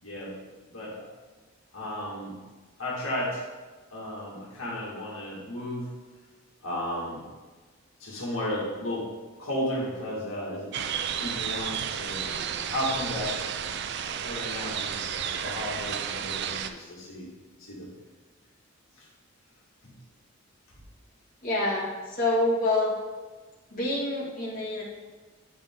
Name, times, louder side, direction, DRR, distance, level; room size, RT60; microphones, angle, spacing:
voice 1, 0.0-0.4 0.7-1.1 1.7-2.4 2.8-3.4 3.9-5.9 6.6-7.2 8.0-9.1 9.4-10.8 11.0-13.4 14.0-17.3 17.6-17.9 19.0-19.1 19.8-19.9, left 1 dB, 70° left, -6 dB, 1.9 m, -34 dB
sound 1, 10.7-16.7, right 8 dB, 50° right, 0.4 m, -32 dB
voice 2, 21.4-22.9 23.7-24.8, left 2 dB, 40° left, -8 dB, 2.2 m, -27 dB
9.2 x 5.1 x 3.7 m, 1.3 s
head